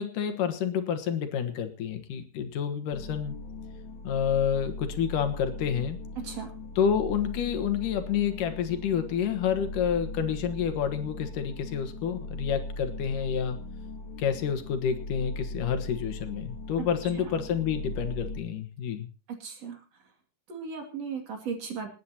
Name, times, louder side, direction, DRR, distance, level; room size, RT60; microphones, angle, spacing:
voice 1, 0.0-3.4 4.0-6.0 6.8-13.6 14.2-19.1, left 8 dB, 80° left, 7 dB, 3.0 m, -29 dB
sound 1, 2.9-18.4, left 2 dB, 65° left, 3.6 m, -39 dB
voice 2, 6.2-6.5 16.8-16.9 19.3-19.8 20.5-21.9, right 6 dB, 50° right, 4 dB, 3.4 m, -36 dB
28.0 x 9.5 x 2.9 m, 0.33 s
omnidirectional pair, 3.7 m